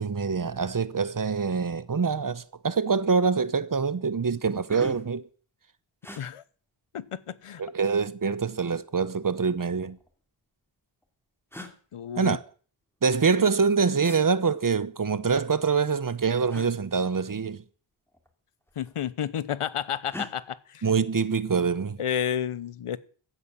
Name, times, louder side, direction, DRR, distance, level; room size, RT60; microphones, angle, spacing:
voice 1, 0.0-5.2 7.6-10.0 12.2-12.4 13.0-17.6 20.8-22.0, right 5 dB, 40° right, 1.0 m, -25 dB
sound 1, 2.4-2.6 2.9-3.4 3.9-4.0 4.3-5.2 6.0-6.2 7.5-8.1 9.3-10.1 11.0-11.1 11.5-11.8 14.0-14.2 16.5-16.7 18.1-18.3 18.6-19.2 20.1-20.3, left 1 dB, 5° left, 3.0 m, -42 dB
voice 2, 6.9-7.6 11.9-12.4 18.8-20.8 22.0-23.0, left 9 dB, 90° left, 1.0 m, -31 dB
15.5 x 9.0 x 7.4 m
wide cardioid pair, 85°, 50 cm